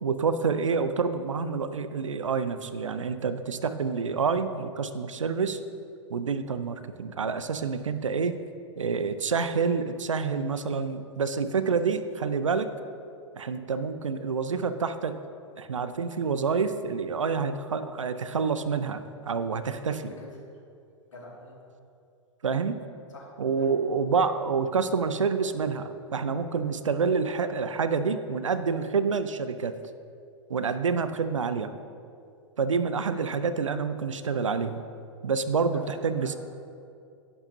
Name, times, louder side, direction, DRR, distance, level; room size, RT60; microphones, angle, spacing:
voice 1, 0.0-5.6 6.1-8.4 8.8-12.7 13.3-15.1 15.6-19.9 22.4-22.8 23.4-29.8 30.5-31.7 32.6-34.8 35.2-36.4, right 5 dB, 75° right, 11 dB, 0.6 m, -28 dB
voice 2, 19.8-20.6 21.1-21.6 23.1-23.3 23.6-23.7 30.9-31.4 33.1-33.4 35.7-36.4, left 1 dB, 70° left, -3 dB, 2.3 m, -47 dB
11.0 x 10.0 x 2.8 m, 2.5 s
figure-of-eight pair, 100°, 16 cm